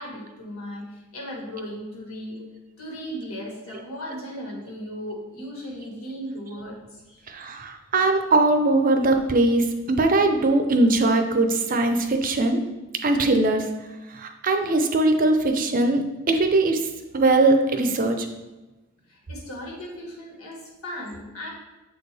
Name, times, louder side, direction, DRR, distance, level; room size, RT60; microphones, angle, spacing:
voice 1, 0.0-2.4 2.8-7.2 19.1-21.5, equal, 85° left, -2 dB, 1.8 m, -36 dB
voice 2, 7.3-12.6 13.0-13.7 14.1-16.0 16.3-16.8 17.1-18.3, right 2 dB, 40° right, 6 dB, 0.6 m, -20 dB
7.3 x 4.3 x 3.4 m, 1.1 s
head